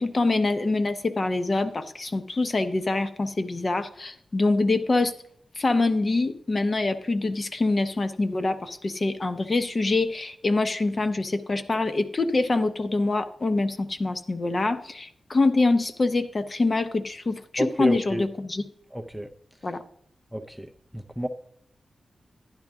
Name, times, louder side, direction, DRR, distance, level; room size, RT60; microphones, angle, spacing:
voice 1, 0.0-5.1 5.6-18.6 19.6-19.8, left 3 dB, 30° left, 9 dB, 0.7 m, -25 dB
voice 2, 17.6-18.2 18.9-19.3 20.3-21.3, equal, ahead, 4 dB, 0.5 m, -29 dB
11.5 x 10.5 x 3.6 m, 0.64 s
wide cardioid pair, 165°, 0 cm